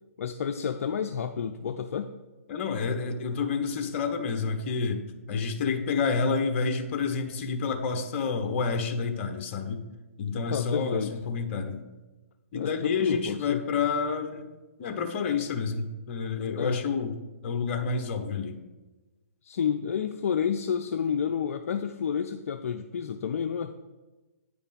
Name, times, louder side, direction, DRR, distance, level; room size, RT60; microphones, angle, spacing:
voice 1, 0.2-2.1 10.5-11.1 12.5-13.6 16.6-16.8 19.4-23.7, left 7 dB, 60° left, 8 dB, 0.5 m, -30 dB
voice 2, 2.5-9.8 10.2-11.8 12.5-14.5 14.8-17.2 17.4-18.6, left 5 dB, 45° left, 7 dB, 1.1 m, -29 dB
9.3 x 5.1 x 5.2 m, 1.2 s
hypercardioid pair, 140°, 8 cm